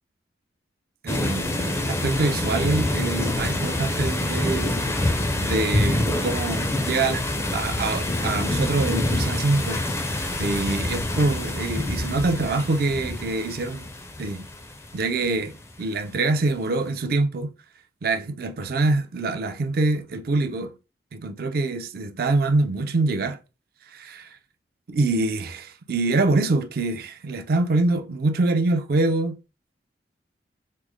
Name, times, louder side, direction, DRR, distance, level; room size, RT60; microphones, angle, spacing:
voice 1, 1.0-1.6 1.9-4.8 5.4-7.3 7.5-13.8 14.2-14.4 14.9-15.5 15.8-17.5 18.0-20.8 21.1-23.4 23.9-24.4 24.9-29.4, right 2 dB, 55° right, 0.4 m, -25 dB
sound 1, 1.1-15.6, left 1 dB, 15° left, 0.4 m, -26 dB
3.1 x 2.1 x 3.5 m
head